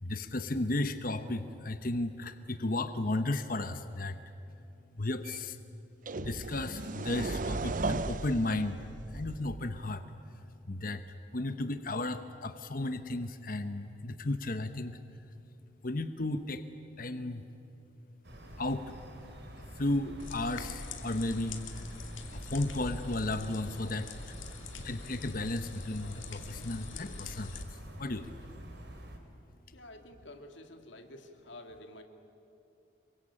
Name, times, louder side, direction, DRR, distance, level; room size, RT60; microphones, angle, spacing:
voice 1, 0.0-4.2 5.0-5.6 6.2-8.8 9.1-10.0 10.7-11.0 11.3-15.0 15.8-16.6 17.0-17.4 18.6-18.9 19.8-21.8 22.3-24.3 24.8-27.6 28.0-28.4, left 2 dB, 45° left, 9 dB, 1.0 m, -34 dB
sound 1, 5.3-5.4 6.1-9.8, right 3 dB, 45° right, 0.6 m, -36 dB
sound 2, 18.2-29.2, right 1 dB, 60° right, 3.6 m, -48 dB
sound 3, 20.2-27.6, left 3 dB, 90° left, 2.5 m, -44 dB
voice 2, 29.7-32.0, left 1 dB, 75° left, 5 dB, 2.5 m, -50 dB
26.5 x 23.5 x 8.8 m, 2.9 s
head